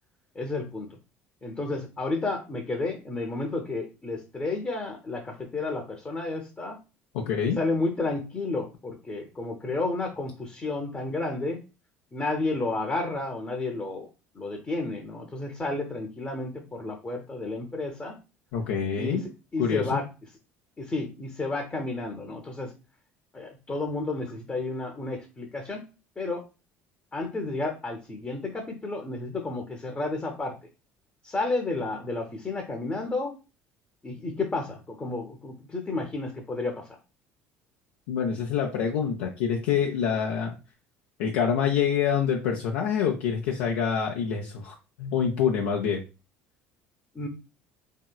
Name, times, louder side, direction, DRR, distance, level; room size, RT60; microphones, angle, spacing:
voice 1, 0.4-0.9 1.4-6.8 7.6-11.6 12.1-14.1 14.3-18.2 19.0-19.2 19.5-20.0 20.8-22.7 23.3-25.8 26.2-26.4 27.1-30.5 31.2-33.3 34.0-36.9 47.1-47.3, left 2 dB, 25° left, 2 dB, 0.7 m, -31 dB
voice 2, 7.1-7.6 18.5-19.2 19.6-20.0 38.1-40.6 41.2-46.0, left 7 dB, 70° left, -1 dB, 0.5 m, -26 dB
3.0 x 2.8 x 2.2 m, 0.31 s
hypercardioid pair, 65°, 7 cm